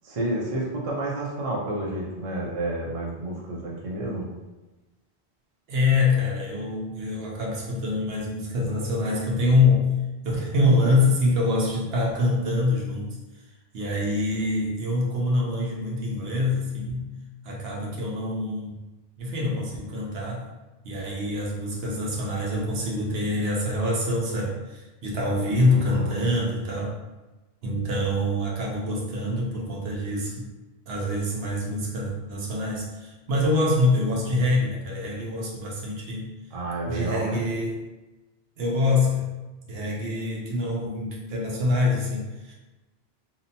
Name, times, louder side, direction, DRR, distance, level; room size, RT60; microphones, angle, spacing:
voice 1, 0.0-4.3 25.6-26.3 36.5-37.4, right 1 dB, 45° right, -3 dB, 0.5 m, -30 dB
voice 2, 5.7-9.9 10.2-13.1 13.7-17.1 17.4-18.8 19.2-20.5 20.8-26.9 27.6-30.5 30.9-36.3 36.9-37.8 38.6-39.3 39.7-42.5, left 2 dB, 70° right, -3 dB, 0.9 m, -25 dB
2.7 x 2.1 x 2.6 m, 1.1 s
omnidirectional pair, 1.1 m